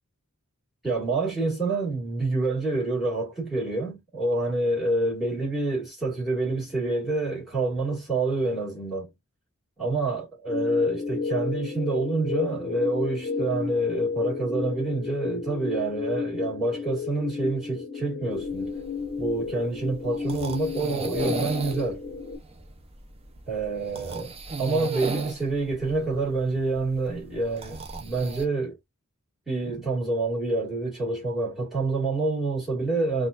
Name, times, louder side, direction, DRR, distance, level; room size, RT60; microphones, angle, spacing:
voice 1, 0.8-9.1 9.8-18.7 19.2-22.0 23.5-28.8 29.5-33.3, right 2 dB, ahead, 2.0 m, -27 dB
sound 1, 10.5-22.3, left 5 dB, 30° left, 0.8 m, -32 dB
sound 2, 18.4-28.5, right 3 dB, 25° right, 0.7 m, -37 dB
4.2 x 2.6 x 2.4 m
head